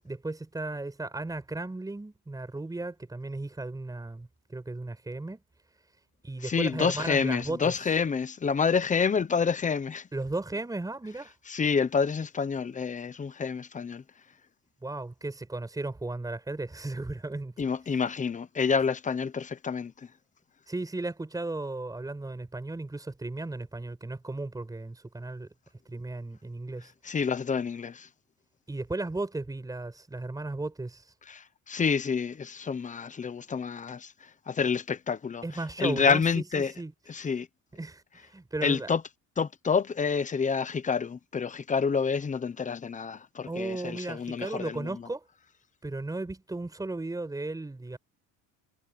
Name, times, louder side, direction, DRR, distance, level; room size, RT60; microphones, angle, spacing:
voice 1, 0.0-5.4 6.2-7.7 10.1-11.3 14.8-17.6 20.7-25.5 25.9-26.9 28.7-31.1 35.4-36.9 37.2-37.3 37.7-38.9 43.5-45.2 45.8-48.0, right 2 dB, 10° right, 5.6 m, -35 dB
voice 2, 6.4-10.1 11.5-14.0 17.6-19.9 27.0-28.1 31.3-34.1 34.5-35.4 35.8-36.7 37.1-37.5 38.6-39.0 39.4-45.0, left 5 dB, 20° left, 1.0 m, -28 dB
cardioid pair, 140°, 36 cm